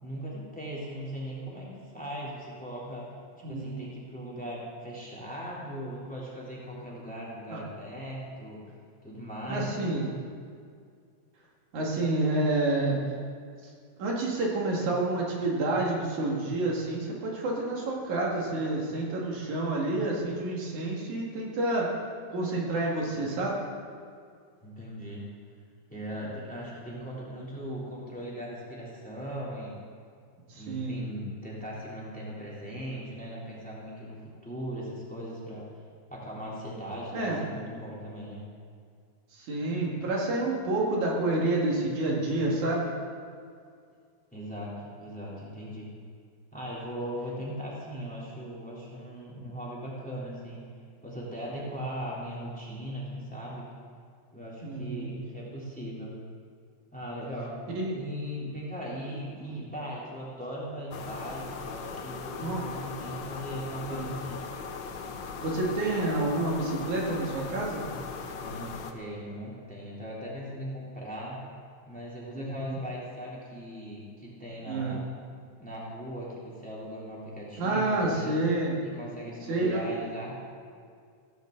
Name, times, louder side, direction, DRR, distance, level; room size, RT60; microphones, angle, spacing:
voice 1, 0.0-8.6 9.0-9.9 24.6-25.2 25.9-29.7 30.5-35.6 36.1-38.4 44.3-45.9 46.5-50.6 51.0-53.7 54.3-56.2 56.9-57.6 57.9-64.4 68.4-71.4 71.9-75.1 75.6-78.4 78.9-80.4, equal, 5° left, -6 dB, 3.1 m, -39 dB
voice 2, 3.4-3.9 7.5-7.6 9.5-10.1 11.7-13.0 14.0-21.9 22.3-23.6 30.5-31.0 37.1-37.4 39.3-42.9 54.6-55.1 57.7-58.0 59.5-59.6 62.4-62.6 63.9-64.0 65.4-67.9 72.3-72.8 74.7-75.0 77.6-78.8 79.5-79.8, right 2 dB, 80° right, -3 dB, 3.6 m, -29 dB
sound 1, 60.9-68.9, left 5 dB, 80° left, 1.0 m, -39 dB
16.0 x 15.0 x 4.0 m, 2.2 s
omnidirectional pair, 3.4 m